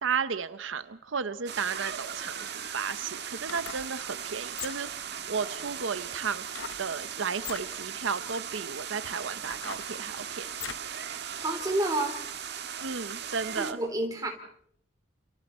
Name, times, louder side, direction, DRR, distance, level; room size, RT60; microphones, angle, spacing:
voice 1, 0.0-6.4 6.8-10.5 12.8-13.8, right 5 dB, 90° right, 12 dB, 0.9 m, -34 dB
sound 1, 1.5-13.7, right 8 dB, 60° right, 1.6 m, -38 dB
sound 2, 2.1-2.2 3.3-3.9 4.5-5.0 6.5-6.9 7.3-7.7 8.4-8.5 9.0-10.9 11.4-11.5, left 8 dB, 85° left, 1.0 m, -41 dB
voice 2, 11.4-12.2 13.6-14.3, right 1 dB, 20° right, 3 dB, 4.1 m, -29 dB
29.5 x 28.5 x 4.4 m, 0.68 s
head